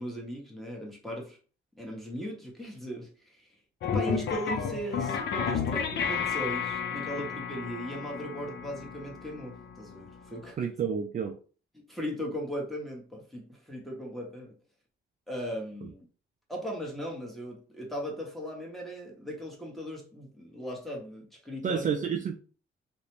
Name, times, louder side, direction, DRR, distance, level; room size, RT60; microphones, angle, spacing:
voice 1, 0.0-1.4 1.8-3.5 3.9-10.7 11.7-14.5 15.3-16.1 16.5-21.9, equal, ahead, 1.0 m, -38 dB
sound 1, 3.8-10.5, left 6 dB, 60° left, 0.6 m, -32 dB
voice 2, 10.6-11.4 21.6-22.4, right 7 dB, 40° right, 0.4 m, -30 dB
2.4 x 2.1 x 3.0 m
cardioid pair, 90°, 20 cm